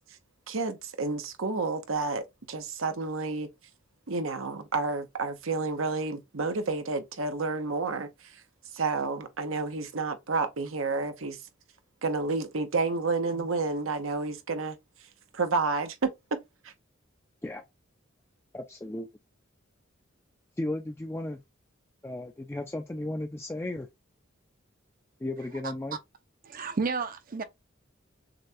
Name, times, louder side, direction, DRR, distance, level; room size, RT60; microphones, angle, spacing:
voice 1, 0.5-3.5 4.1-8.4 8.7-11.4 12.0-14.8 15.3-16.7, right 3 dB, 90° right, 0.9 m, -30 dB
voice 2, 18.5-19.1 20.6-21.4 22.0-23.9 25.2-26.0, left 1 dB, 10° left, 0.4 m, -34 dB
voice 3, 26.4-27.4, right 4 dB, 45° right, 0.6 m, -31 dB
6.5 x 2.2 x 2.6 m
head